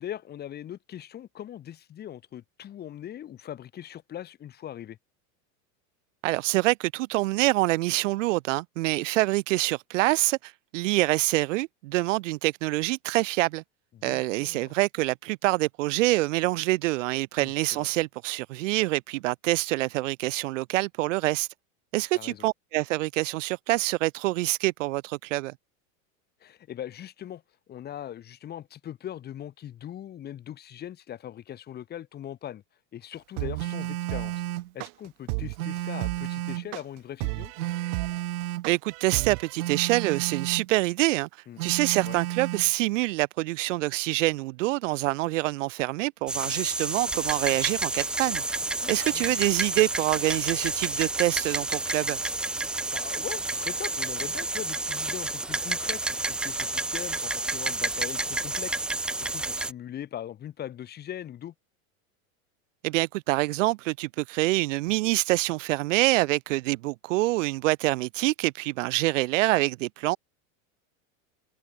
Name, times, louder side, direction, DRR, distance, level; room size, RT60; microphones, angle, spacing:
voice 1, 0.0-5.0 13.9-14.7 17.4-17.9 22.1-22.5 26.4-27.4 27.7-32.6 32.9-34.4 34.7-37.5 41.5-41.6 42.0-42.1 48.8-49.4 52.9-58.8 59.2-61.5, left 11 dB, 25° left, 3.9 m, -40 dB
voice 2, 6.2-13.6 14.0-21.5 21.9-25.5 38.7-41.3 41.6-48.4 48.9-52.2 62.8-70.2, right 20 dB, 60° right, 2.5 m, -26 dB
sound 1, 33.4-39.5, right 38 dB, 45° right, 1.5 m, -33 dB
Telephone, 33.6-34.7 35.6-36.7 37.6-38.7 39.6-40.7 41.6-42.7, right 15 dB, 90° right, 3.2 m, -32 dB
sound 2, 46.3-59.7, right 2 dB, ahead, 0.4 m, -30 dB
supercardioid pair, 165°, 41 cm